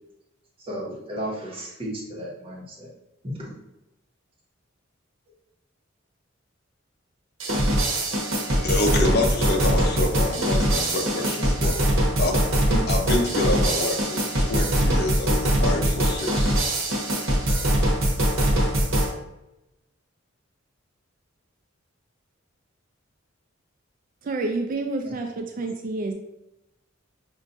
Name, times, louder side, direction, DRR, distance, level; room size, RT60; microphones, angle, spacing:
voice 1, 0.6-2.9 3.2-3.5 25.0-25.1, equal, 30° right, -5 dB, 1.1 m, -34 dB
sound 1, 7.4-19.1, right 1 dB, 85° right, 1.0 m, -22 dB
voice 2, 8.6-16.6, left 2 dB, 55° left, 2 dB, 0.6 m, -27 dB
voice 3, 24.2-26.1, right 3 dB, 45° right, 4 dB, 0.3 m, -28 dB
5.3 x 2.5 x 2.6 m, 0.93 s
head